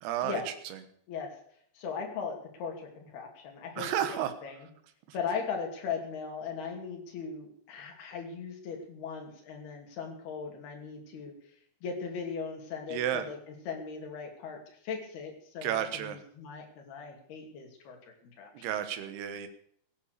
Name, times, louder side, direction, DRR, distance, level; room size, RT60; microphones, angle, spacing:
voice 1, 0.0-0.8 3.8-4.3 12.9-13.3 15.6-16.2 18.5-19.5, right 10 dB, 70° right, 9 dB, 3.2 m, -32 dB
voice 2, 1.7-4.7 5.1-11.3 11.8-18.0 18.4-18.7, left 6 dB, 65° left, 2 dB, 4.7 m, -38 dB
16.0 x 10.0 x 6.8 m, 0.65 s
omnidirectional pair, 5.0 m